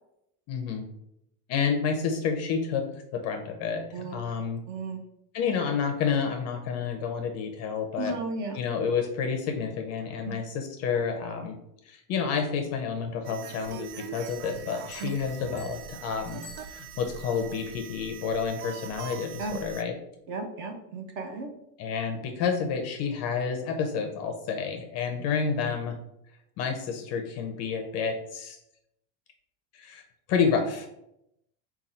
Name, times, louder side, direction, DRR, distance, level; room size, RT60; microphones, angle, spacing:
voice 1, 0.5-0.8 1.5-2.9 3.1-4.6 5.3-8.1 8.5-11.6 11.9-20.0 21.8-26.0 26.6-28.6 29.7-30.0 30.3-30.9, left 6 dB, 35° left, 5 dB, 0.5 m, -29 dB
voice 2, 4.7-5.0 8.0-8.6 10.3-10.4 15.0-15.1 19.4-19.6 20.3-21.5, right 3 dB, 40° right, 5 dB, 0.7 m, -34 dB
sound 1, 13.2-19.8, right 8 dB, 90° right, 0.6 m, -43 dB
Bell, 14.2-17.3, left 4 dB, ahead, 1.0 m, -54 dB
5.3 x 2.3 x 4.2 m, 0.81 s
supercardioid pair, 150°, 47 cm